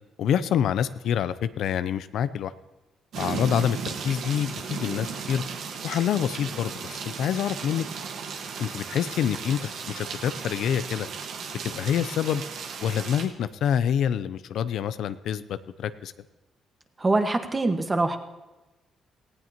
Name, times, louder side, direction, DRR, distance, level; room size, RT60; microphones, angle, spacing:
voice 1, 0.2-2.5 3.2-5.4 5.8-7.9 8.6-11.1 11.6-12.4 12.8-16.1, left 9 dB, 75° left, 14 dB, 0.5 m, -27 dB
sound 1, 3.1-13.2, right 6 dB, 75° right, 1.5 m, -35 dB
voice 2, 17.0-18.2, right 2 dB, 25° right, 6 dB, 1.4 m, -24 dB
18.5 x 16.0 x 2.9 m, 1.1 s
cardioid pair, 90°, 0 cm